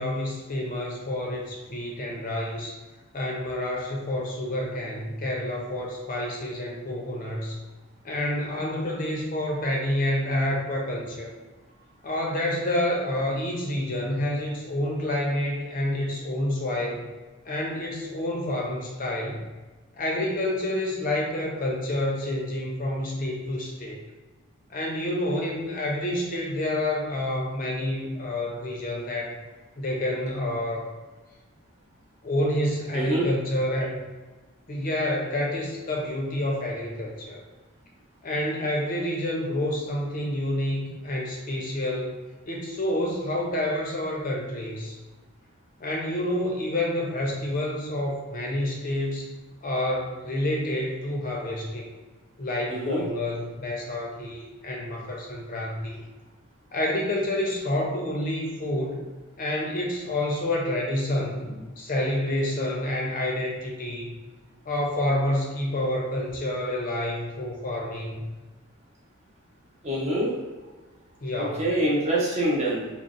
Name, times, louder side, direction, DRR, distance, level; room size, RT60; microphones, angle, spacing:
voice 1, 0.0-2.8 3.1-7.6 8.0-11.3 12.0-17.1 17.4-19.4 20.0-24.0 24.7-29.4 29.8-30.9 32.2-34.0 34.7-37.4 38.2-42.1 42.5-45.0 45.8-49.3 49.6-51.9 52.4-56.0 56.7-59.0 59.4-64.1 64.7-68.2 71.2-71.6, left 1 dB, 40° left, -1 dB, 0.5 m, -28 dB
voice 2, 32.9-33.3 52.7-53.0 69.8-70.3 71.4-72.9, right 1 dB, 30° right, -5 dB, 0.7 m, -25 dB
3.8 x 2.0 x 2.4 m, 1.2 s
head